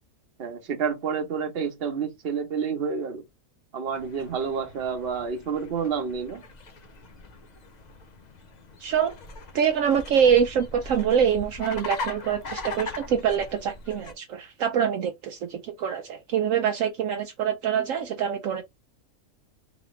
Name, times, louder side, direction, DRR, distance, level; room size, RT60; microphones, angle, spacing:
voice 1, 0.4-3.2 3.7-6.4, right 6 dB, 50° right, 1.1 m, -29 dB
sound 1, 3.9-14.1, left 3 dB, 45° left, 0.6 m, -40 dB
voice 2, 8.8-9.1 9.5-18.6, right 8 dB, 70° right, 0.9 m, -25 dB
4.1 x 2.9 x 3.0 m
omnidirectional pair, 1.5 m